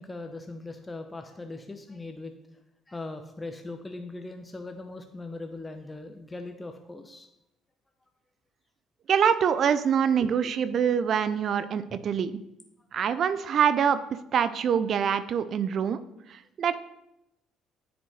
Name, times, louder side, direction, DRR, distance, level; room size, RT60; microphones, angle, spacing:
voice 1, 0.0-2.3 2.9-7.3 10.2-10.5, left 2 dB, 20° left, 5 dB, 0.7 m, -40 dB
voice 2, 9.1-12.3 12.9-14.0 14.3-16.0 16.6-16.8, right 7 dB, 55° right, 13 dB, 0.4 m, -24 dB
9.6 x 5.1 x 3.2 m, 0.87 s
hypercardioid pair, 55°, 0 cm